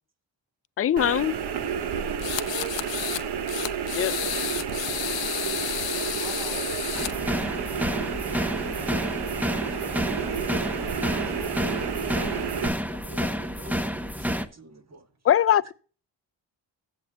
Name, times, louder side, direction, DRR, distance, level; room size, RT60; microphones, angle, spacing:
voice 1, 0.8-1.3 3.9-4.1 15.2-15.7, left 10 dB, 35° left, 0.4 m, -21 dB
sound 1, 1.0-12.7, right 7 dB, 60° right, 1.0 m, -31 dB
sound 2, 2.2-3.2 3.5-7.1, left 14 dB, 80° left, 0.6 m, -31 dB
voice 2, 2.3-2.7 5.3-6.7 14.3-15.2, right 5 dB, 90° right, 3.1 m, -46 dB
sound 3, 6.9-14.5, equal, 5° right, 0.8 m, -30 dB
voice 3, 13.0-15.1, right 1 dB, 35° right, 1.4 m, -48 dB
15.0 x 7.7 x 2.3 m
cardioid pair, 60°, 44 cm